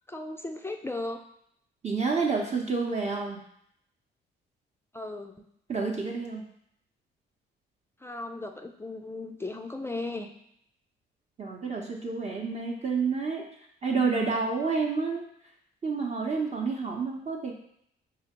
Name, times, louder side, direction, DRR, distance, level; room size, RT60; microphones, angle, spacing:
voice 1, 0.1-1.2 4.9-5.3 8.0-10.3, left 2 dB, 10° left, 5 dB, 0.4 m, -36 dB
voice 2, 1.8-3.4 5.7-6.4 11.4-13.4 13.8-15.2 15.8-17.5, right 4 dB, 35° right, -1 dB, 0.8 m, -29 dB
4.8 x 2.4 x 2.9 m, 0.72 s
supercardioid pair, 65°, 21 cm